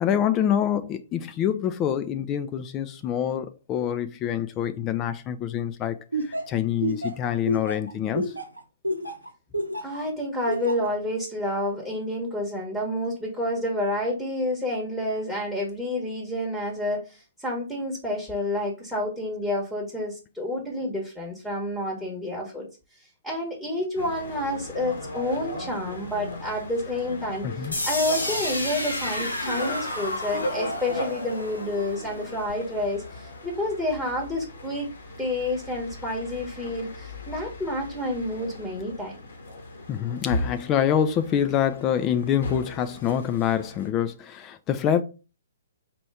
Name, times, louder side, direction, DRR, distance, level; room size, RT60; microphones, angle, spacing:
voice 1, 0.0-6.0 6.2-8.3 27.4-27.8 39.9-45.0, left 9 dB, 25° left, 0.3 m, -26 dB
Laughter, 6.1-10.0 10.5-10.9, right 1 dB, 85° right, 0.7 m, -29 dB
voice 2, 9.8-22.7 23.0-34.9 35.2-39.1, left 1 dB, ahead, 1.0 m, -29 dB
sound 1, 24.0-43.9, left 1 dB, 60° left, 1.1 m, -37 dB
sound 2, 27.7-33.6, left 1 dB, 80° left, 1.0 m, -32 dB
4.4 x 2.6 x 3.3 m
figure-of-eight pair, 125°, 0 cm